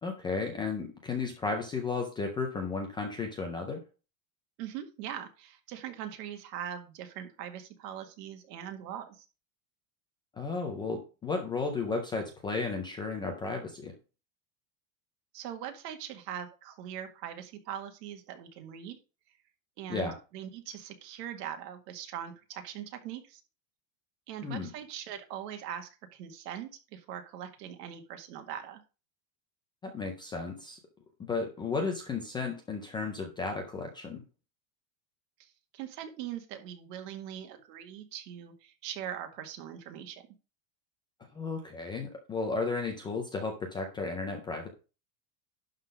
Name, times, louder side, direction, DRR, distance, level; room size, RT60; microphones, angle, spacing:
voice 1, 0.0-3.8 10.3-13.9 19.9-20.1 24.4-24.7 29.8-30.8 31.2-34.2 41.3-44.7, left 4 dB, 10° left, 3 dB, 0.4 m, -34 dB
voice 2, 4.6-9.3 15.3-19.0 19.8-23.4 24.3-28.8 35.4-40.2, right 10 dB, 70° right, 6 dB, 2.0 m, -41 dB
11.5 x 3.9 x 5.1 m, 0.33 s
supercardioid pair, 165°, 50 cm